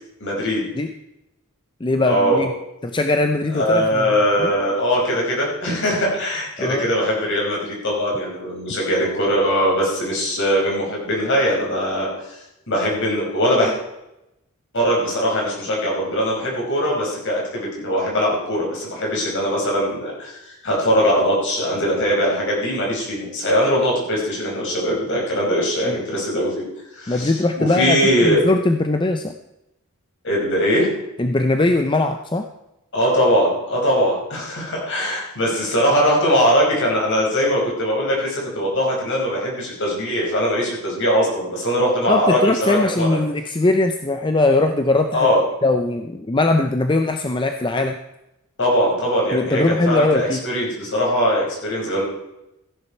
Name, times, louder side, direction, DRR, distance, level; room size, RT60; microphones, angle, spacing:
voice 1, 0.2-0.7 2.0-2.4 3.5-12.1 12.7-13.7 14.7-26.7 27.0-28.4 30.2-30.9 32.9-43.2 45.1-45.4 48.6-52.0, equal, 55° left, -2 dB, 5.4 m, -21 dB
voice 2, 1.8-2.5 2.8-4.1 4.4-4.5 6.6-6.9 25.9-26.0 27.1-29.3 31.2-32.5 42.1-45.3 45.6-48.0 49.3-50.5, left 2 dB, 20° left, 7 dB, 0.6 m, -20 dB
15.5 x 10.5 x 4.4 m, 0.89 s
head